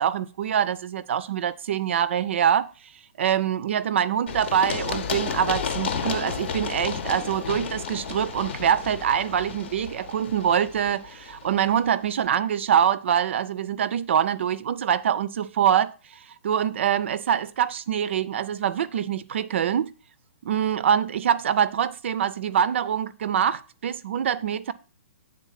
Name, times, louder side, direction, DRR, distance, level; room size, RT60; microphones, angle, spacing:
voice 1, 0.0-2.7 3.2-15.9 16.4-19.9 20.5-24.7, right 9 dB, 55° right, 0.4 m, -24 dB
Run, 4.3-11.9, left 6 dB, 50° left, 0.8 m, -32 dB
8.3 x 3.8 x 5.6 m
hypercardioid pair, 165°, 8 cm